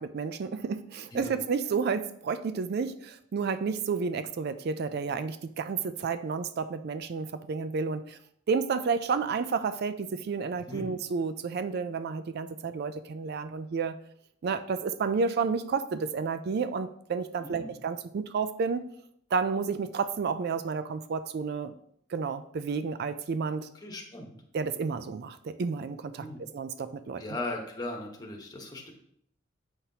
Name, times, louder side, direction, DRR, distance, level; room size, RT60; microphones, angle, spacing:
voice 1, 0.0-8.2 8.5-14.0 14.4-18.9 19.3-21.7 22.1-23.7 24.5-26.3 26.5-27.2, right 5 dB, 55° right, 11 dB, 0.3 m, -31 dB
voice 2, 23.8-24.3 26.2-26.4 27.2-28.9, left 2 dB, 20° left, 1 dB, 1.1 m, -38 dB
8.0 x 5.8 x 2.8 m, 0.69 s
head